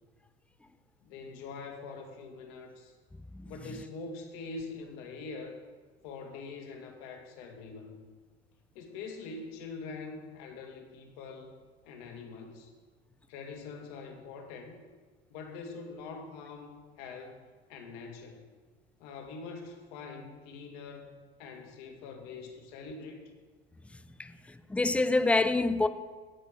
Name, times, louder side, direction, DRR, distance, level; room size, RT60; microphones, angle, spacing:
voice 1, 1.0-2.9 3.5-5.6 6.0-8.1 8.8-12.7 13.3-14.8 15.3-18.5 19.0-21.1 21.4-23.3, left 4 dB, 55° left, 1.9 m, -44 dB
voice 2, 24.7-25.9, left 2 dB, 5° left, 0.4 m, -26 dB
16.0 x 6.1 x 5.0 m
figure-of-eight pair, 70°, 32 cm